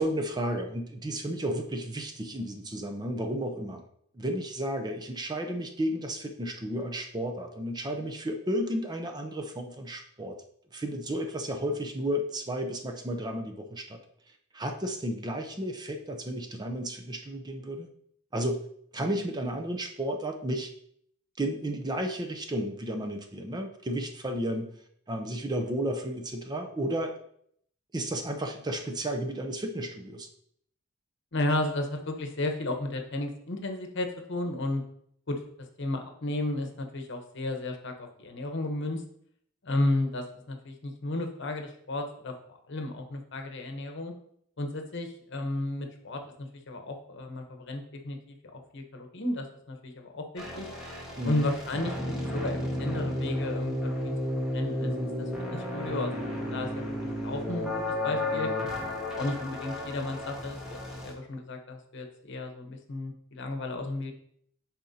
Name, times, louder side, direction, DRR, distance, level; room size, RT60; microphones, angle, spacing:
voice 1, 0.0-3.8 4.1-10.4 10.7-14.0 14.5-17.9 18.3-18.6 18.9-20.7 21.4-24.7 25.1-27.2 27.9-30.3 51.2-51.4, right 1 dB, 20° right, 4 dB, 0.6 m, -32 dB
voice 2, 31.3-34.8 35.3-35.4 35.8-39.0 39.6-42.3 42.7-44.1 44.6-50.7 51.2-52.0 52.3-54.2 54.5-54.9 55.2-58.5 59.1-64.1, left 2 dB, 60° left, 4 dB, 1.0 m, -33 dB
sound 1, 50.4-61.1, left 1 dB, 5° right, 1.4 m, -33 dB
10.0 x 4.2 x 2.8 m, 0.68 s
head